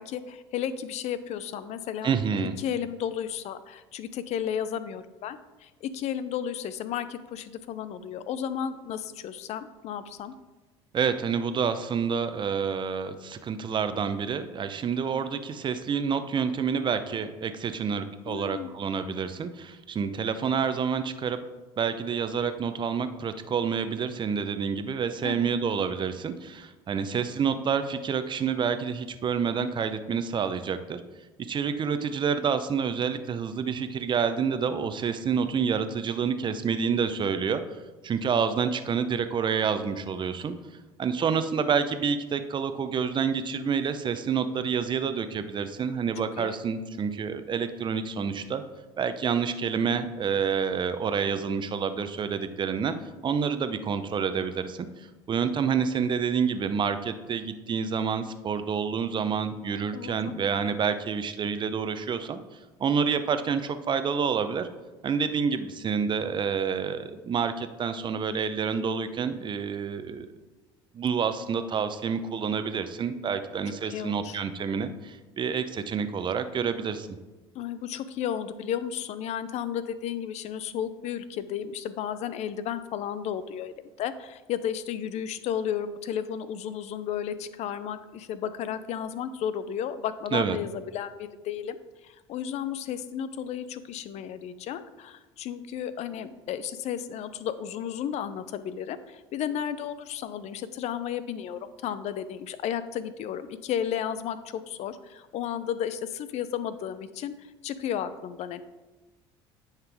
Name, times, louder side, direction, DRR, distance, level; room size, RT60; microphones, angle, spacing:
voice 1, 0.0-2.1 2.4-10.3 18.3-18.7 25.2-25.6 46.4-46.6 59.9-60.3 73.7-74.4 77.5-83.7 84.0-91.8 92.0-108.6, left 9 dB, 55° left, 13 dB, 0.6 m, -33 dB
voice 2, 2.0-2.6 10.9-21.4 21.8-31.0 31.5-37.6 38.0-40.5 41.0-48.6 49.0-52.9 53.2-62.4 62.8-64.7 65.0-70.3 70.9-77.1 90.3-90.6, right 6 dB, 35° right, 10 dB, 0.7 m, -28 dB
9.5 x 5.7 x 3.5 m, 1.2 s
hypercardioid pair, 70°, 13 cm